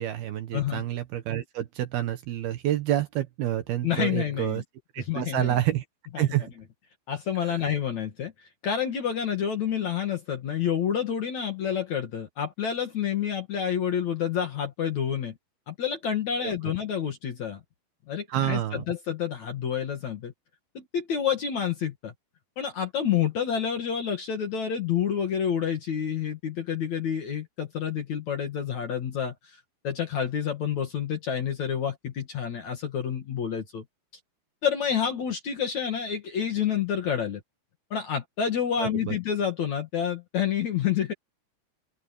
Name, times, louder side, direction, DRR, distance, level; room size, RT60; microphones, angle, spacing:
voice 1, 0.0-4.6 4.9-5.8 6.2-6.5 16.4-16.5 18.3-18.8 38.8-39.2, right 13 dB, 65° right, 2.9 m, -28 dB
voice 2, 0.5-0.8 3.8-4.6 5.0-5.6 6.1-6.5 7.1-8.3 8.6-15.3 15.7-17.6 18.1-20.3 20.7-22.1 22.6-29.3 29.8-33.8 34.6-37.4 37.9-41.1, left 8 dB, 50° left, 2.5 m, -28 dB
open air
omnidirectional pair, 5.3 m